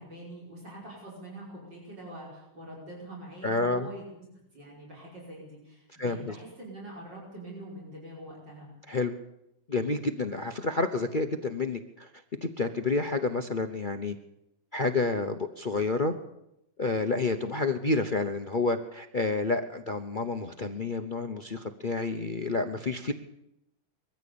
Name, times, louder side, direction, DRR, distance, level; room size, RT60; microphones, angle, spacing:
voice 1, 0.0-4.1 4.5-8.7, right 1 dB, 55° right, -4 dB, 6.2 m, -44 dB
voice 2, 3.4-3.9 6.0-6.3 8.9-9.1 9.7-12.1 12.4-14.1 14.7-16.1 16.8-23.1, left 3 dB, 55° left, 6 dB, 0.5 m, -29 dB
22.0 x 15.0 x 8.6 m, 0.85 s
omnidirectional pair, 2.3 m